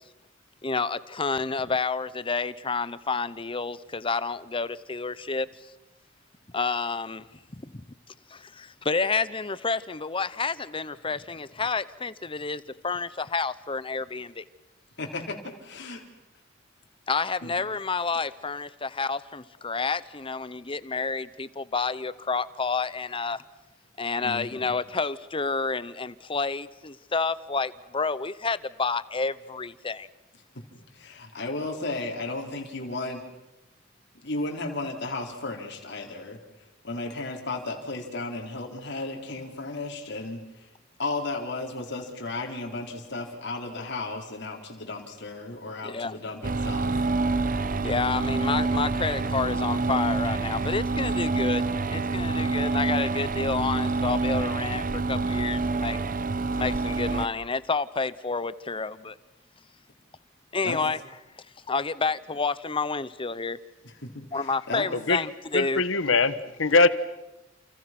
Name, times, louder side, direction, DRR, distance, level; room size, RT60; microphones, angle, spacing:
voice 1, 0.6-5.5 6.5-7.2 7.6-7.8 8.3-14.4 17.1-23.4 24.0-30.1 45.8-46.2 47.8-51.6 51.9-56.0 56.6-59.1 60.5-61.0 61.7-63.6 64.3-65.8, left 4 dB, 25° left, 0.9 m, -29 dB
voice 2, 15.0-16.0 17.4-17.5 24.2-24.7 30.3-30.6 30.9-33.2 34.2-36.4 36.8-40.7 41.0-47.0 60.6-60.8 63.8-64.9 66.1-66.3, left 2 dB, 60° left, 4.2 m, -34 dB
sound 1, 46.4-57.3, right 3 dB, 45° right, 1.1 m, -27 dB
voice 3, 65.5-66.3 66.6-66.9, left 3 dB, 85° left, 1.2 m, -21 dB
30.0 x 28.5 x 6.1 m
head